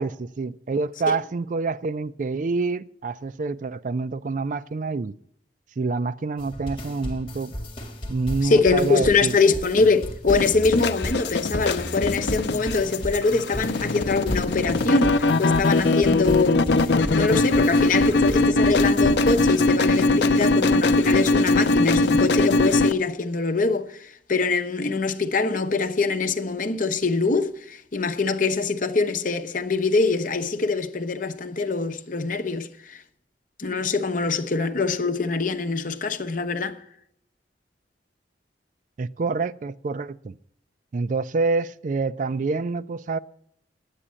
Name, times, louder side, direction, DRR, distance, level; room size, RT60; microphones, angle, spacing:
voice 1, 0.0-5.1 5.8-7.5 8.1-9.3 39.0-40.4 40.9-43.2, right 4 dB, 45° right, 0.4 m, -27 dB
sound 1, 6.4-19.5, equal, 30° left, 1.8 m, -34 dB
voice 2, 8.4-16.7 17.1-33.0 33.6-36.8, left 4 dB, 50° left, 0.9 m, -23 dB
sound 2, 10.3-22.9, left 2 dB, 75° left, 0.6 m, -21 dB
9.9 x 8.3 x 7.4 m
head